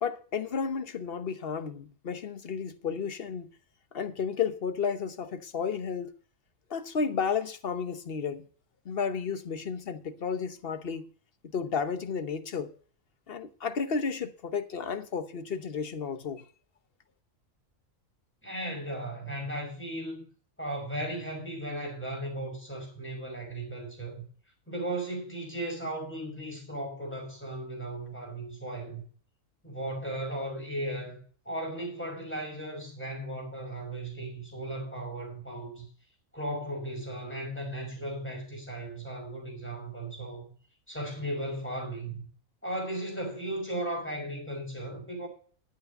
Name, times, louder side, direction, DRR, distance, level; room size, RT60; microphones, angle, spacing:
voice 1, 0.0-3.5 3.9-6.1 6.7-8.5 8.8-11.1 11.5-12.7 13.3-16.4, left 6 dB, 50° left, 1.1 m, -32 dB
voice 2, 18.4-20.2 20.6-24.2 24.7-29.0 29.6-35.9 36.3-40.4 40.9-42.3 42.6-45.3, right 1 dB, 10° left, 5.9 m, -36 dB
11.5 x 8.5 x 5.3 m
omnidirectional pair, 1.4 m